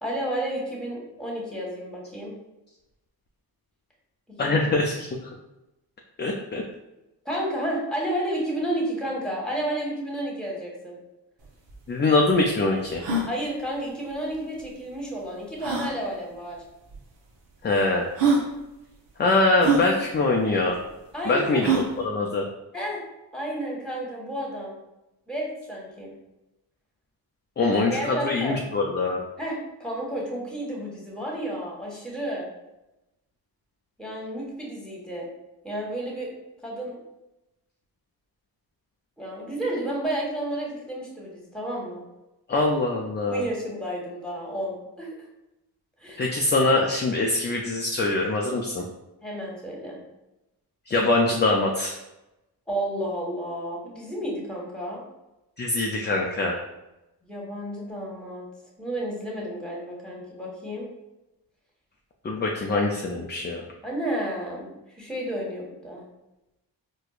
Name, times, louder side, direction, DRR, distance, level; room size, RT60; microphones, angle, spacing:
voice 1, 0.0-2.3 4.3-4.7 7.2-11.0 13.3-16.6 21.1-21.7 22.7-23.0 23.3-24.8 25.3-26.1 27.9-28.6 29.4-32.5 34.0-35.3 35.6-36.3 36.6-37.0 39.2-42.0 43.3-45.1 46.0-46.3 49.2-50.0 52.7-55.0 57.2-58.5 58.8-60.9 63.8-66.0, right 1 dB, ahead, -3 dB, 1.3 m, -31 dB
voice 2, 4.4-5.2 6.2-6.6 11.9-13.1 17.6-18.1 19.2-20.8 21.3-22.4 27.6-29.2 42.5-43.4 46.2-48.8 50.9-52.0 55.6-56.6 62.2-63.6, left 2 dB, 25° left, 0 dB, 0.4 m, -23 dB
sound 1, 11.4-11.5 11.7-11.8 12.3-12.4 12.9-13.3 14.6-14.7 15.6-15.9 16.9-17.0 17.7-17.8 18.2-18.5 19.6-19.9 21.6-21.9, right 3 dB, 65° right, 0.8 m, -23 dB
4.4 x 2.3 x 2.4 m, 0.95 s
supercardioid pair, 45°, 46 cm